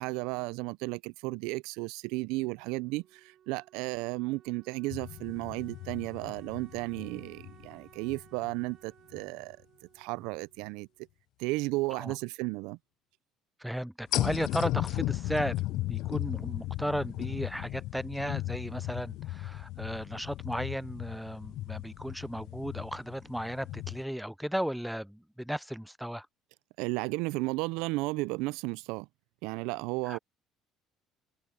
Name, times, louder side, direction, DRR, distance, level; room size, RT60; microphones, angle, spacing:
voice 1, 0.0-9.6 10.0-10.9 11.4-12.8 26.8-29.1 29.4-30.2, right 23 dB, 85° right, 0.3 m, -34 dB
Wind instrument woodwind instrument, 2.4-11.1, right 10 dB, 60° right, 1.1 m, -60 dB
sound 1, 4.9-8.6 9.1-9.2 14.1-24.0, left 17 dB, 70° left, 0.3 m, -36 dB
voice 2, 13.6-26.3 30.1-30.2, equal, ahead, 0.4 m, -35 dB
cardioid pair, 110°, 0 cm